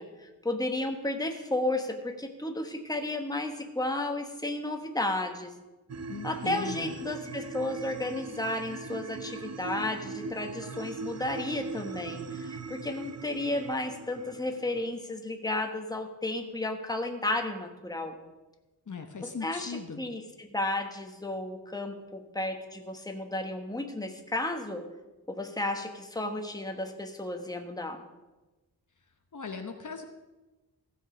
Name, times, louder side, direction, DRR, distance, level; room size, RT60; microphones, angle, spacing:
voice 1, 0.0-5.5 6.2-18.2 19.2-24.8 25.3-28.0, left 2 dB, 10° left, 4 dB, 1.2 m, -33 dB
sound 1, 5.9-14.9, right 4 dB, 40° right, 0.7 m, -40 dB
voice 2, 6.1-6.9 18.9-20.0 29.3-30.0, left 5 dB, 50° left, 5 dB, 1.0 m, -39 dB
15.5 x 6.4 x 5.1 m, 1.1 s
wide cardioid pair, 85°, 39 cm